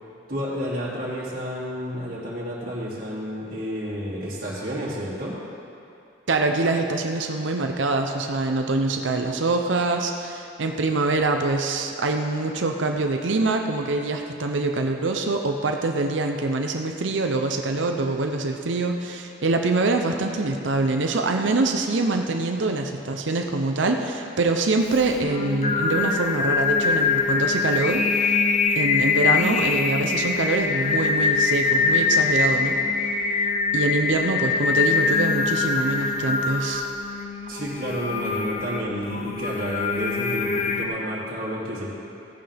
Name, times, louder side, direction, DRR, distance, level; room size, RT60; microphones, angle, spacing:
voice 1, 0.3-5.4 37.5-41.9, equal, 50° right, -8 dB, 2.7 m, -31 dB
voice 2, 6.3-28.4 28.8-32.8 33.7-36.9, right 3 dB, 85° right, 4 dB, 0.7 m, -24 dB
Singing, 24.9-40.9, left 4 dB, 40° left, 0.6 m, -23 dB
16.0 x 9.3 x 3.5 m, 2.7 s
head